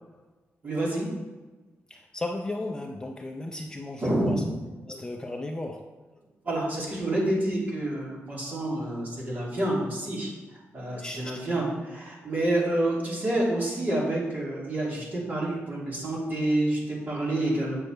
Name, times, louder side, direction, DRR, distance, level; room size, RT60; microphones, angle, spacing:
voice 1, 0.6-1.1 4.0-4.4 6.4-17.8, right 1 dB, 40° right, -4 dB, 2.7 m, -28 dB
voice 2, 1.9-4.4 4.9-6.0 11.0-11.4, left 2 dB, 15° left, 3 dB, 0.5 m, -35 dB
8.2 x 6.5 x 4.5 m, 1.2 s
wide cardioid pair, 160°, 5 cm